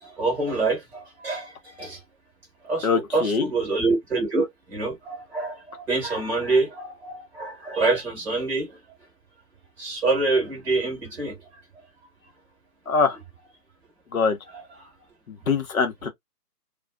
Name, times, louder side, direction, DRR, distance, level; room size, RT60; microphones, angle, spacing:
voice 1, 0.0-2.0 2.6-8.8 9.8-11.4 14.5-14.9, right 3 dB, 5° right, 1.2 m, -26 dB
voice 2, 2.8-3.5 12.9-13.2 14.1-14.4 15.3-16.1, left 5 dB, 60° left, 1.0 m, -23 dB
2.4 x 2.3 x 2.2 m
figure-of-eight pair, 150°, 47 cm